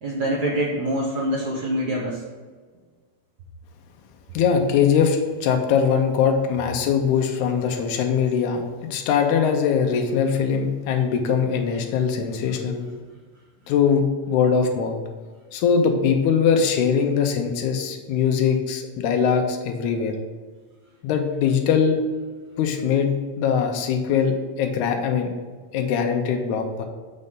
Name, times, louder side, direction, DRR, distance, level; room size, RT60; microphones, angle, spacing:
voice 1, 0.0-2.2, right 1 dB, 75° right, -5 dB, 0.9 m, -25 dB
voice 2, 4.3-12.9 13.7-14.9 15.5-20.1 21.0-22.0 22.6-25.3 25.7-26.9, left 6 dB, 90° left, 4 dB, 2.1 m, -21 dB
6.4 x 5.3 x 3.7 m, 1.5 s
omnidirectional pair, 3.4 m